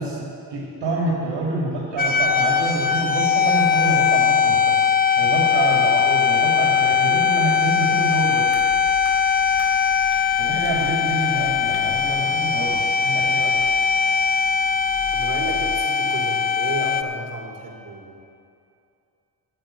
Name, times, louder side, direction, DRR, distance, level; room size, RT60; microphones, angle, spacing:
voice 1, 0.0-4.8 5.2-8.6 10.4-13.6, right 2 dB, 65° right, -4 dB, 2.6 m, -27 dB
sound 1, 2.0-17.0, left 6 dB, 20° left, 0.6 m, -20 dB
sound 2, 8.5-15.8, left 7 dB, 60° left, 2.1 m, -43 dB
voice 2, 12.7-13.0 15.1-18.2, right 4 dB, 40° right, -2 dB, 3.1 m, -33 dB
9.0 x 8.4 x 9.0 m, 2.5 s
supercardioid pair, 65°, 46 cm